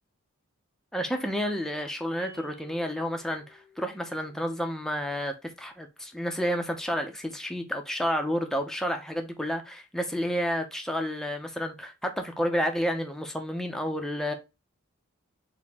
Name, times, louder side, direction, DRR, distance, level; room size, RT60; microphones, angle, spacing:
voice 1, 0.9-14.3, equal, ahead, 0.7 m, -30 dB
sound 1, 2.2-4.7, right 3 dB, 75° right, 1.6 m, -55 dB
4.3 x 2.8 x 3.5 m
head